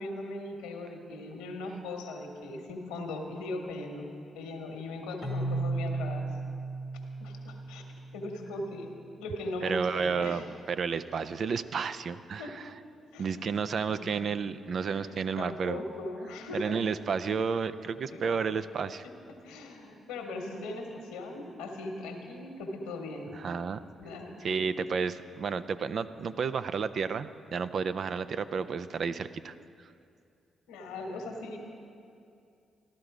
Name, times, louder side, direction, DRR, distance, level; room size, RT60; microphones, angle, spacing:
voice 1, 0.0-6.2 7.2-7.8 8.1-10.4 12.4-12.6 13.1-13.6 13.9-14.2 14.9-16.8 18.1-18.2 19.0-23.3 24.0-24.7 30.7-31.6, left 2 dB, 85° left, 3 dB, 1.3 m, -39 dB
Keyboard (musical), 5.2-8.9, right 3 dB, 45° right, 2.9 m, -35 dB
voice 2, 9.6-12.7 13.2-15.8 16.5-19.1 23.3-23.8 24.4-29.5, right 5 dB, 60° right, 12 dB, 0.4 m, -31 dB
14.5 x 12.0 x 4.9 m, 2.5 s
hypercardioid pair, 45°, 0 cm